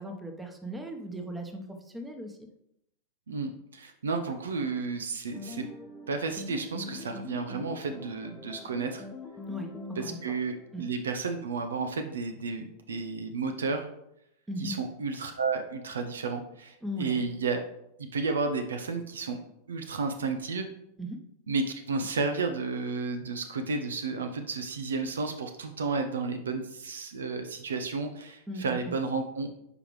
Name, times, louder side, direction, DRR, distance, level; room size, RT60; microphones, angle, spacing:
voice 1, 0.0-2.5 9.5-10.3 10.7-10.9 14.5-14.7 16.8-17.2 21.0-21.2 28.5-28.9, equal, 10° right, 5 dB, 1.1 m, -38 dB
voice 2, 3.3-5.7 6.1-9.0 10.2-13.9 14.6-17.6 18.0-19.4 19.7-20.7 21.5-29.5, right 4 dB, 75° right, 7 dB, 0.8 m, -32 dB
sound 1, 5.3-11.7, left 3 dB, 15° left, 0.9 m, -44 dB
9.9 x 5.1 x 3.2 m, 0.79 s
figure-of-eight pair, 90°, 0 cm